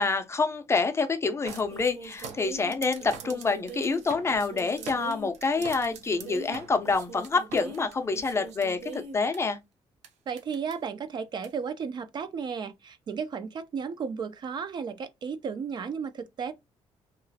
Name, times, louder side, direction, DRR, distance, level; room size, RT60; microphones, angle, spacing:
voice 1, 0.0-9.6, left 4 dB, 25° left, 0.4 m, -27 dB
sound 1, 1.5-9.4 10.0-10.1 10.4-10.7 11.4-11.5, right 4 dB, 85° right, 0.7 m, -41 dB
voice 2, 10.3-16.5, right 6 dB, 40° right, 0.4 m, -34 dB
2.9 x 2.4 x 2.6 m
cardioid pair, 135°, 11 cm